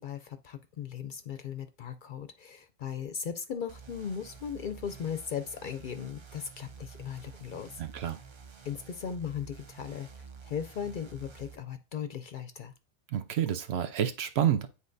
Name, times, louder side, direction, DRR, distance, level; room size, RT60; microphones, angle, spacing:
voice 1, 0.0-7.8 8.6-12.7, left 7 dB, 60° left, 9 dB, 0.6 m, -38 dB
sound 1, 3.7-11.6, right 5 dB, 40° right, 0.4 m, -50 dB
voice 2, 7.8-8.2 13.1-14.7, right 10 dB, 70° right, 9 dB, 0.8 m, -29 dB
9.8 x 4.0 x 2.6 m, 0.33 s
omnidirectional pair, 1.2 m